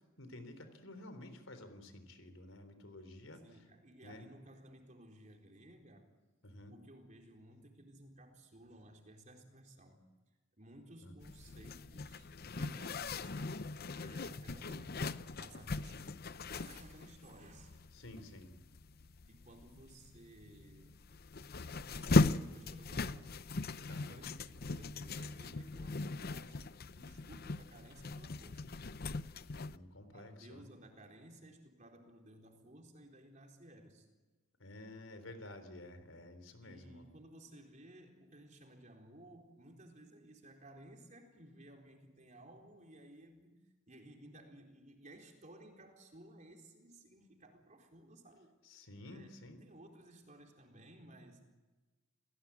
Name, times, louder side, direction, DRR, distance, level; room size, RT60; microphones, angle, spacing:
voice 1, 0.2-3.4 4.0-4.3 6.4-6.7 11.0-11.1 17.9-18.5 23.9-24.2 29.6-30.7 34.6-37.0 48.6-49.6, left 1 dB, 80° left, 10 dB, 3.9 m, -51 dB
voice 2, 3.4-6.1 6.7-10.0 10.6-13.6 14.0-17.8 19.3-21.1 21.7-23.4 23.9-28.7 30.1-34.1 36.6-43.5 43.9-48.6 49.0-51.5, right 1 dB, 40° right, 3 dB, 4.1 m, -57 dB
Zipper (clothing), 11.2-29.8, left 3 dB, 50° left, 0.7 m, -38 dB
28.5 x 18.0 x 8.7 m, 1.2 s
head